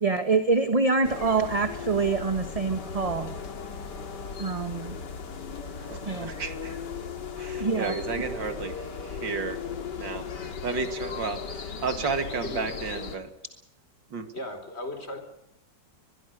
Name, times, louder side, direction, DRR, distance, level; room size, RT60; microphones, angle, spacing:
voice 1, 0.0-3.3 4.4-5.0 6.0-6.3 7.5-8.0, right 4 dB, 20° right, 9 dB, 1.2 m, -25 dB
sound 1, 1.0-13.2, left 5 dB, 70° left, 2.6 m, -37 dB
voice 2, 5.9-6.7 7.4-8.7 9.2-9.6 10.0-10.2 10.6-11.4 11.8-13.3 14.1-14.3, right 4 dB, 80° right, 8 dB, 2.9 m, -32 dB
voice 3, 14.3-15.2, left 2 dB, 35° left, 7 dB, 4.2 m, -36 dB
23.5 x 21.0 x 6.6 m, 0.84 s
omnidirectional pair, 2.0 m